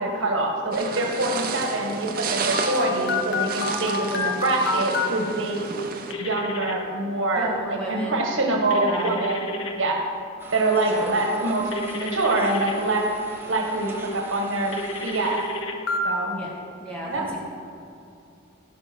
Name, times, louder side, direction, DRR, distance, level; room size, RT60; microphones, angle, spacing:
voice 1, 0.0-5.6 6.2-10.0 10.5-13.1 13.5-15.4 16.0-16.4 17.0-17.2, right 2 dB, 85° right, 1 dB, 1.5 m, -25 dB
sound 1, 0.7-6.1, right 4 dB, 45° right, 0.8 m, -31 dB
Telephone, 2.5-5.1 6.1-6.7 8.7-9.7 11.7-12.7 14.7-16.0, left 3 dB, 85° left, 1.1 m, -29 dB
voice 2, 7.4-8.2 8.7-9.2 10.9-11.2 16.3-16.5 16.7-17.4, right 1 dB, 5° left, -6 dB, 2.4 m, -33 dB
sound 2, 10.4-15.6, right 2 dB, 10° right, 1.0 m, -42 dB
14.5 x 5.5 x 6.1 m, 2.6 s
head